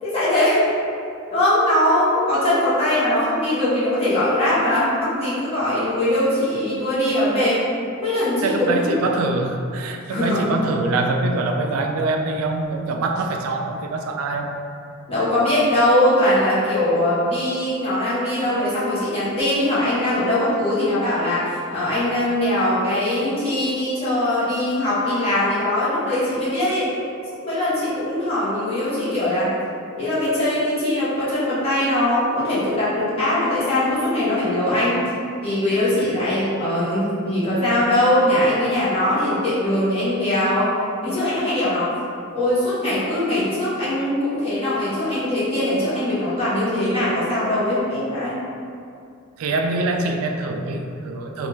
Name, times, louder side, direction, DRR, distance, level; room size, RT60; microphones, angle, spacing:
voice 1, 0.0-0.7 1.3-7.6 8.0-8.9 10.1-10.5 15.1-26.9 27.4-29.5 30.0-35.0 35.4-40.7 41.0-41.9 42.3-48.4, left 1 dB, 30° left, -11 dB, 1.1 m, -21 dB
voice 2, 8.4-14.5 49.4-51.5, right 2 dB, 80° right, 4 dB, 0.3 m, -24 dB
3.2 x 2.4 x 3.1 m, 2.5 s
head